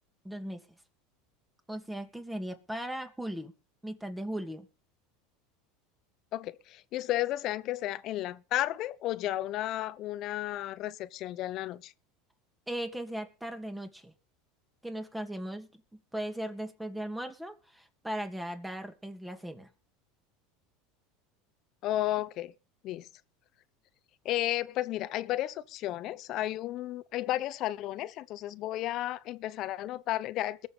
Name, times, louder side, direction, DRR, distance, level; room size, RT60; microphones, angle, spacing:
voice 1, 0.2-0.6 1.7-3.5 3.8-4.7 12.7-14.1 14.8-15.7 16.1-19.7, right 1 dB, 5° right, 2.6 m, -37 dB
voice 2, 6.3-11.9 21.8-22.5 22.8-23.1 24.2-30.7, left 14 dB, 50° left, 1.0 m, -33 dB
21.0 x 7.2 x 5.5 m
supercardioid pair, 105°, 0 cm